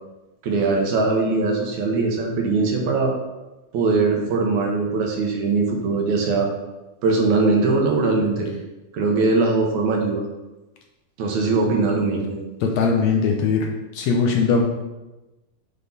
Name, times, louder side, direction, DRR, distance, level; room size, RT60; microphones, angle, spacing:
voice 1, 0.4-3.1 3.7-6.5 7.0-8.5 8.9-10.2 11.2-12.4, right 3 dB, 70° right, 1 dB, 2.3 m, -21 dB
voice 2, 12.6-13.7 14.0-14.7, left 5 dB, 75° left, 2 dB, 1.7 m, -20 dB
8.0 x 5.2 x 4.1 m, 1.1 s
omnidirectional pair, 3.6 m